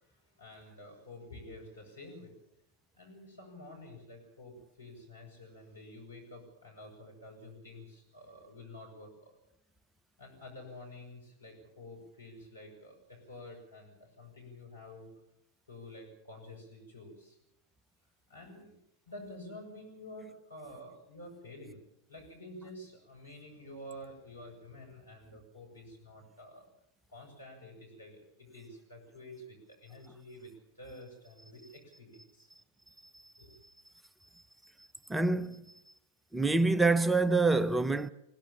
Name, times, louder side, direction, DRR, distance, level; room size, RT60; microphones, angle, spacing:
voice 1, 0.0-2.4 2.9-9.4 10.2-15.1 15.7-17.4 18.3-18.7 19.1-21.8 22.1-26.7 27.1-32.5 32.9-33.0 33.4-33.5, left 1 dB, 80° left, 7.2 m, -50 dB
voice 2, 35.1-35.6 36.3-38.1, right 3 dB, 10° right, 0.7 m, -26 dB
21.5 x 17.0 x 7.3 m
figure-of-eight pair, 90°, 0 cm